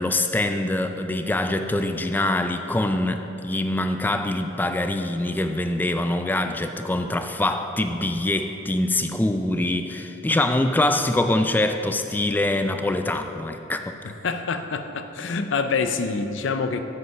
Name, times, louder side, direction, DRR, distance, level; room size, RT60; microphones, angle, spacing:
voice 1, 0.0-14.0, left 1 dB, 10° left, 7 dB, 0.3 m, -24 dB
voice 2, 14.0-16.8, left 4 dB, 90° left, 8 dB, 0.5 m, -26 dB
7.9 x 5.3 x 5.8 m, 2.8 s
head